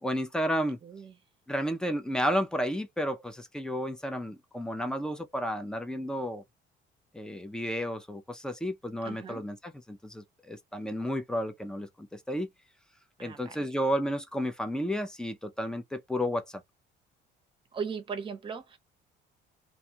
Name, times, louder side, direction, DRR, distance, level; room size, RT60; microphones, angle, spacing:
voice 1, 0.0-0.8 1.5-6.4 7.1-12.5 13.2-16.6, equal, 5° left, 0.4 m, -32 dB
voice 2, 0.8-1.1 9.0-9.4 13.2-13.5 17.7-18.8, right 6 dB, 25° right, 0.8 m, -38 dB
2.5 x 2.2 x 2.8 m
cardioid pair, 150°, 20 cm